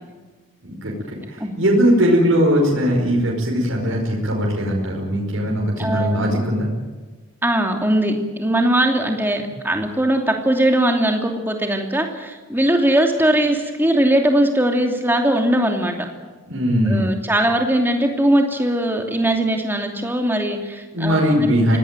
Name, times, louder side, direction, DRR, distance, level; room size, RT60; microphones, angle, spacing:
voice 1, 0.6-6.7 16.5-17.1 20.9-21.8, equal, 65° right, -2 dB, 5.4 m, -19 dB
voice 2, 5.8-6.3 7.4-16.0 16.9-21.4, right 1 dB, 10° right, 3 dB, 2.7 m, -20 dB
25.0 x 18.5 x 9.1 m, 1.3 s
head